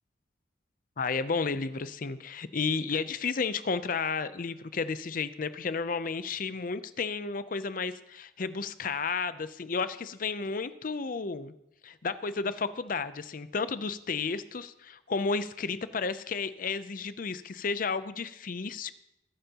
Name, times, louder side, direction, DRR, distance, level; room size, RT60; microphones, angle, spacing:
voice 1, 1.0-11.5 11.8-18.9, left 4 dB, 45° left, 13 dB, 0.5 m, -32 dB
20.5 x 9.0 x 2.9 m, 0.84 s
head